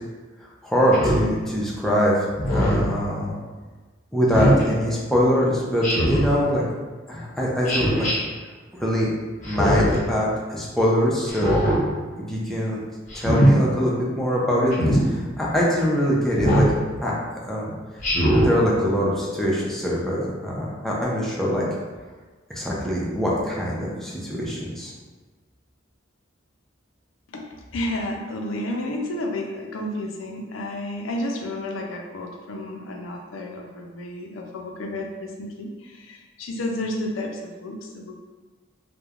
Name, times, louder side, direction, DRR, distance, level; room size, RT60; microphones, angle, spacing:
voice 1, 0.6-3.4 4.1-6.6 7.1-8.1 8.7-9.1 9.4-11.6 12.2-12.8 13.1-16.7 17.0-17.1 17.5-17.7 18.4-21.6 22.5-24.9, equal, ahead, -6 dB, 0.5 m, -23 dB
Speech synthesizer, 0.9-1.3 2.4-2.9 4.3-4.6 5.8-6.3 7.7-8.1 9.4-10.0 11.3-11.8 13.1-13.5 14.7-15.0 16.4-16.7 18.0-18.5, equal, 40° left, 0.8 m, -20 dB
voice 2, 27.3-38.2, left 1 dB, 75° left, 1 dB, 0.4 m, -31 dB
3.0 x 2.1 x 2.3 m, 1.3 s
head